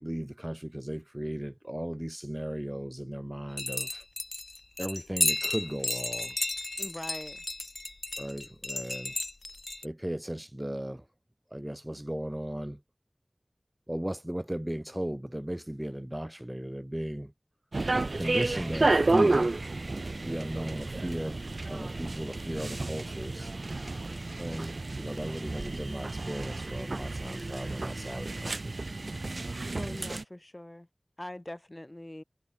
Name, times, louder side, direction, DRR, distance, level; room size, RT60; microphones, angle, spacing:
voice 1, 0.0-4.0 4.8-6.4 8.2-9.1 9.8-11.1 11.5-12.8 13.9-17.3 18.1-19.6 20.2-21.4 21.7-23.5 24.4-28.8, right 1 dB, 15° right, 1.8 m, -36 dB
sound 1, 3.6-9.9, left 2 dB, 65° left, 1.3 m, -33 dB
voice 2, 6.8-7.4 29.8-30.9 31.2-32.2, left 1 dB, 30° left, 1.1 m, -42 dB
sound 2, 17.7-30.2, right 2 dB, 80° right, 0.3 m, -31 dB
wide cardioid pair, 45°, 0 cm